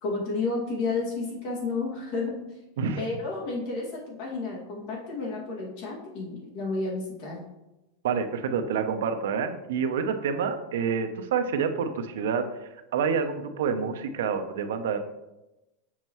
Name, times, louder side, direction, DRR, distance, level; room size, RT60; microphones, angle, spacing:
voice 1, 0.0-2.4 3.0-7.4, left 3 dB, 45° left, -4 dB, 2.2 m, -31 dB
voice 2, 8.0-12.5 12.9-15.0, right 6 dB, 80° right, 8 dB, 0.7 m, -28 dB
7.2 x 5.4 x 3.1 m, 0.98 s
supercardioid pair, 180°, 0 cm